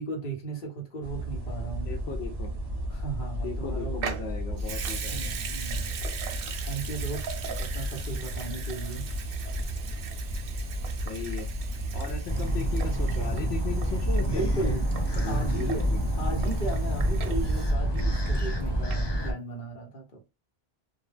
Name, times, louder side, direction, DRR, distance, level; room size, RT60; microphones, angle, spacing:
voice 1, 0.0-1.9 2.9-4.0 5.1-6.0 6.6-7.3 7.6-9.1 14.3-15.9 16.2-20.2, right 3 dB, 55° left, 1.1 m, -36 dB
sound 1, 1.0-18.9, right 1 dB, 25° right, 0.7 m, -33 dB
voice 2, 1.9-2.5 3.4-5.3 11.0-11.5 11.9-14.9 15.2-16.0, left 5 dB, 85° left, 0.9 m, -37 dB
Water tap faucet / Sink (filling or washing) / Liquid, 4.0-18.6 18.9-19.0, right 7 dB, 65° right, 0.7 m, -40 dB
sound 2, 12.3-19.3, right 1 dB, 35° left, 0.4 m, -28 dB
2.3 x 2.3 x 3.2 m
omnidirectional pair, 1.1 m